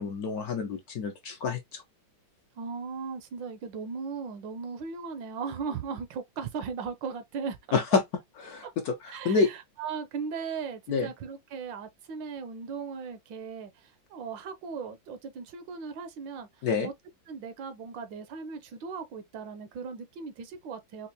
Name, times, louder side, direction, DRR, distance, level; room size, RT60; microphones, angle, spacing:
voice 1, 0.0-1.8 7.7-8.0 8.4-9.5 10.9-11.1 16.6-16.9, left 4 dB, 65° left, 1.0 m, -28 dB
voice 2, 2.6-8.0 8.6-8.7 9.1-16.9 17.3-21.1, right 5 dB, 75° right, 1.4 m, -38 dB
4.5 x 2.4 x 2.7 m
omnidirectional pair, 2.1 m